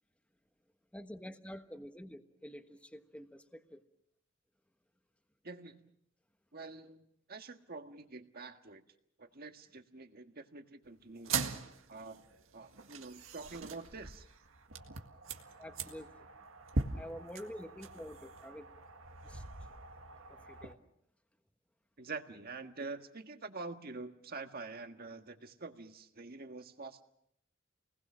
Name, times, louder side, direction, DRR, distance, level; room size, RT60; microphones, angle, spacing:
voice 1, 0.9-3.8 15.6-16.1 17.0-18.6 19.2-19.4 20.3-20.8, equal, 5° left, 7 dB, 1.3 m, -48 dB
voice 2, 5.4-5.9 6.5-8.8 9.2-11.3 11.9-12.2 12.5-14.2 22.0-27.0, right 3 dB, 50° right, 6 dB, 1.7 m, -46 dB
sound 1, 11.2-20.7, right 4 dB, 85° right, 1.8 m, -41 dB
29.0 x 20.0 x 6.3 m, 0.74 s
head